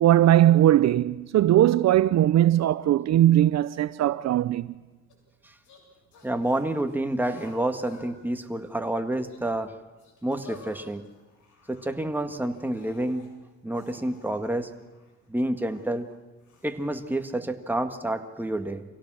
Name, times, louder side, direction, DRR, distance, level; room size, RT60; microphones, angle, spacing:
voice 1, 0.0-4.8, right 12 dB, 60° right, 0.6 m, -19 dB
sound 1, 5.1-5.2 5.6-5.8 6.1-8.1 8.4-8.9 9.2-9.4 10.0-12.0 12.5-13.3 13.7-16.0 16.4-16.7, left 4 dB, 75° left, 7.6 m, -52 dB
voice 2, 6.2-9.7 10.2-11.0 11.7-13.3 13.6-14.7 15.3-16.1 16.6-18.8, right 1 dB, 5° right, 1.8 m, -29 dB
25.0 x 17.0 x 6.3 m
cardioid pair, 90°, 30 cm